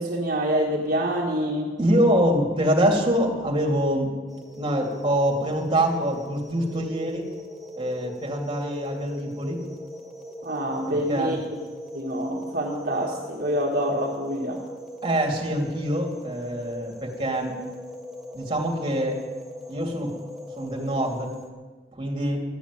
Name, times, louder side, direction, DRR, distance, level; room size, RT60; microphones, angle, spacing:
voice 1, 0.0-1.7 10.4-11.4 11.9-14.6, equal, 50° right, -3 dB, 1.7 m, -26 dB
voice 2, 1.8-4.1 4.6-7.3 7.8-9.6 10.9-11.4 15.0-17.6 18.3-19.2 19.7-20.1 20.6-21.3 22.0-22.4, right 1 dB, 25° right, 0 dB, 2.5 m, -25 dB
sound 1, 4.3-21.5, left 1 dB, ahead, 1.2 m, -40 dB
13.0 x 7.1 x 9.7 m, 1.3 s
head